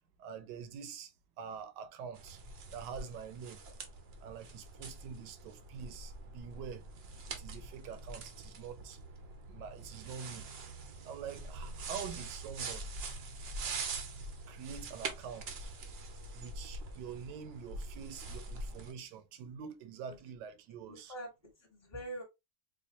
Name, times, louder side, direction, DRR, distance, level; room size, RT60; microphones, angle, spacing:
voice 1, 0.2-1.1 1.4-2.4 2.7-3.6 4.2-6.8 7.3-9.0 9.5-10.5 11.0-12.9 14.5-15.7 16.3-21.1, right 7 dB, 85° right, 1.3 m, -45 dB
sound 1, 2.2-18.9, right 3 dB, 65° right, 0.6 m, -44 dB
voice 2, 20.9-22.2, right 1 dB, 30° left, 1.1 m, -45 dB
4.4 x 2.4 x 2.6 m
omnidirectional pair, 1.8 m